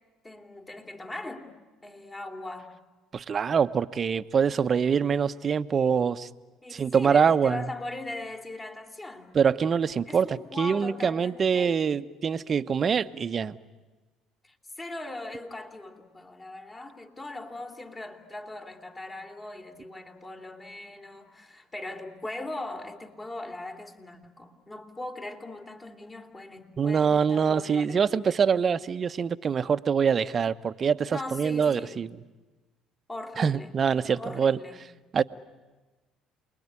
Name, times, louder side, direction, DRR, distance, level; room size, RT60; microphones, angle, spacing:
voice 1, 0.2-1.5 1.8-2.8 6.6-9.4 10.1-11.8 14.4-28.0 31.1-32.1 33.1-33.7 34.1-34.8, left 2 dB, 20° left, 3.3 m, -40 dB
voice 2, 3.1-6.3 6.7-7.6 9.3-13.6 26.8-32.1 33.4-34.6 35.1-35.2, right 6 dB, 40° right, 1.0 m, -24 dB
29.0 x 21.0 x 9.8 m
supercardioid pair, 70°, 0 cm